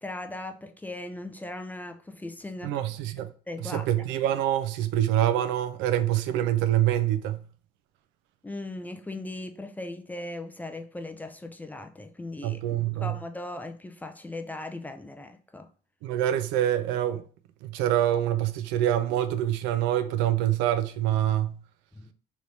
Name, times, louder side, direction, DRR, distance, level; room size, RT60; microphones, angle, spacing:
voice 1, 0.0-2.8 3.5-3.9 8.4-12.6 12.9-15.7 21.9-22.1, left 2 dB, 10° left, 0.4 m, -38 dB
voice 2, 2.6-3.3 3.6-7.4 12.4-13.2 16.0-17.2 17.6-21.6, right 12 dB, 85° right, 0.4 m, -25 dB
3.0 x 2.6 x 3.3 m
cardioid pair, 110°, 19 cm